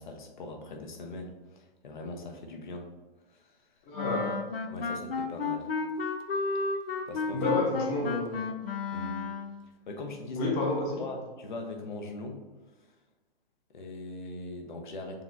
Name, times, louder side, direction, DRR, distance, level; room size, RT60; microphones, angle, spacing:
voice 1, 0.0-2.9 3.3-3.6 4.7-5.7 7.1-7.5 8.9-9.3 9.9-10.5 11.0-12.4 13.7-15.2, left 2 dB, 50° left, 3 dB, 0.8 m, -40 dB
voice 2, 3.9-4.3 7.3-8.4 10.3-11.0, left 2 dB, 20° left, -1 dB, 1.0 m, -29 dB
Wind instrument woodwind instrument, 4.0-9.6, left 4 dB, 75° left, 0.5 m, -32 dB
6.7 x 3.0 x 2.5 m, 1.3 s
figure-of-eight pair, 115°, 30 cm